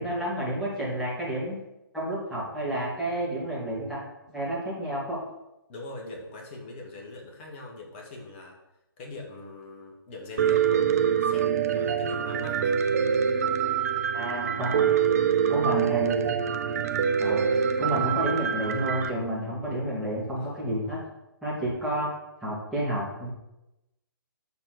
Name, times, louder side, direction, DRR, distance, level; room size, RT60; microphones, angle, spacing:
voice 1, 0.0-1.5 1.9-4.0 4.3-5.2 14.1-14.8 15.5-16.3 17.2-17.5 17.8-21.0 21.4-22.1 22.4-23.3, right 1 dB, ahead, -10 dB, 2.4 m, -30 dB
voice 2, 5.7-8.6 9.0-12.8 14.9-15.2 15.8-15.9 20.3-20.6, left 2 dB, 30° left, 0 dB, 1.6 m, -42 dB
Piano, 10.4-19.1, right 8 dB, 40° right, 0.5 m, -25 dB
6.9 x 4.3 x 6.5 m, 0.94 s
figure-of-eight pair, 130°, 12 cm